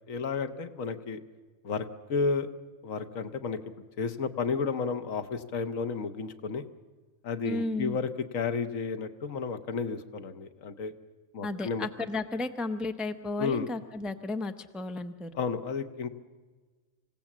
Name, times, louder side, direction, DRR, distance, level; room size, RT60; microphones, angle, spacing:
voice 1, 0.1-1.2 1.6-2.5 2.8-3.6 4.0-6.6 7.2-10.9 11.3-11.9 13.4-13.7 15.3-16.1, left 5 dB, 75° left, 9 dB, 1.4 m, -32 dB
voice 2, 7.4-8.0 11.4-15.3, left 2 dB, ahead, 8 dB, 0.6 m, -33 dB
26.5 x 16.5 x 7.3 m, 1.4 s
omnidirectional pair, 1.4 m